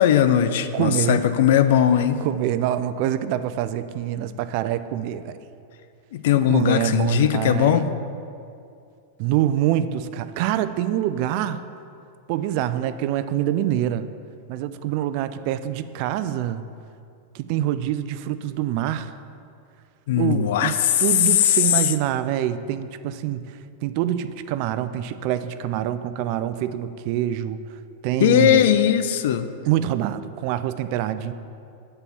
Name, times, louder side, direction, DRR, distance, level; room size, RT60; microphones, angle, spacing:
voice 1, 0.0-2.2 6.1-7.9 20.1-21.6 28.2-29.5, left 10 dB, 65° left, 11 dB, 0.4 m, -19 dB
voice 2, 0.7-1.2 2.2-5.4 6.5-7.9 9.2-11.6 12.3-14.1 14.5-16.6 17.3-19.1 20.2-20.7 21.0-28.6 29.7-31.3, right 11 dB, 55° right, 12 dB, 0.4 m, -25 dB
8.0 x 4.3 x 6.9 m, 2.5 s
hypercardioid pair, 105°, 0 cm